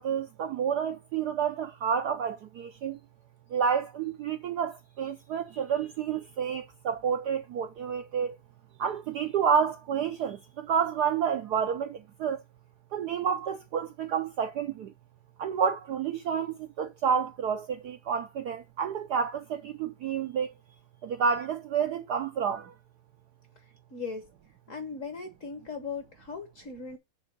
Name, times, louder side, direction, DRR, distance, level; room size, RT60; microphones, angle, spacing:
voice 1, 0.0-3.0 3.5-8.4 8.8-12.4 12.9-14.9 15.4-20.5 21.0-22.7, right 7 dB, 70° right, 0.9 m, -29 dB
voice 2, 23.9-24.3 24.7-27.0, left 5 dB, 50° left, 1.1 m, -38 dB
8.0 x 3.6 x 6.6 m
omnidirectional pair, 2.4 m